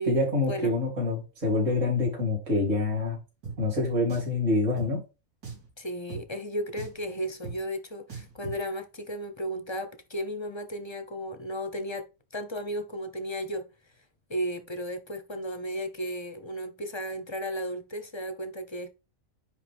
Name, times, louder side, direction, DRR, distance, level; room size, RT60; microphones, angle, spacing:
voice 1, 0.1-3.2 3.6-5.0, left 2 dB, 50° right, 3.5 m, -26 dB
Drum, 3.4-3.6 4.1-4.4 4.8-4.9 5.4-5.7 6.1-6.2 6.8-7.0 7.4-7.6 8.1-8.6, right 5 dB, 75° right, 3.2 m, -39 dB
voice 2, 5.8-12.1 12.3-13.7 14.3-18.9, equal, 25° left, 0.7 m, -34 dB
10.0 x 3.4 x 3.5 m
omnidirectional pair, 1.6 m